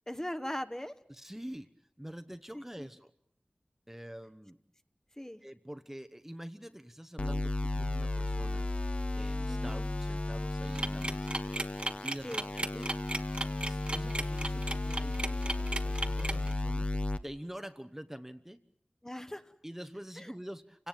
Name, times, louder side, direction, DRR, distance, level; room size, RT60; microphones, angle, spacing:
voice 1, 0.1-0.9 2.5-2.9 5.2-5.4 9.5-9.9 12.2-12.4 19.0-19.5 20.2-20.3, left 1 dB, 15° left, 9 dB, 1.2 m, -40 dB
voice 2, 1.1-1.7 2.0-3.1 3.9-4.6 5.4-8.7 9.2-11.4 12.0-12.9 13.6-18.6 19.6-20.9, equal, 10° right, 10 dB, 1.0 m, -46 dB
sound 1, 7.2-17.2, left 2 dB, 45° left, 1.1 m, -34 dB
sound 2, 10.7-16.5, right 1 dB, 40° right, 1.3 m, -35 dB
29.0 x 18.0 x 9.0 m, 0.69 s
wide cardioid pair, 55°, 3 cm